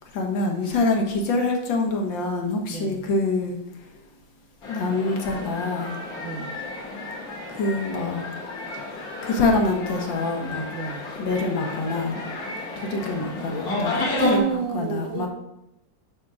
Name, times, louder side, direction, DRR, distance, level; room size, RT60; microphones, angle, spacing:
voice 1, 0.1-3.6 4.7-6.0 7.5-8.3 9.2-10.7 11.2-12.2 12.8-14.4 14.7-15.3, left 3 dB, 65° left, 2 dB, 1.9 m, -25 dB
voice 2, 2.7-3.1 6.2-6.6 10.7-11.1 14.0-15.3, right 6 dB, 70° right, 6 dB, 1.3 m, -29 dB
sound 1, 4.6-14.4, left 2 dB, 45° left, 1.9 m, -33 dB
10.0 x 3.7 x 6.2 m, 0.85 s
omnidirectional pair, 2.3 m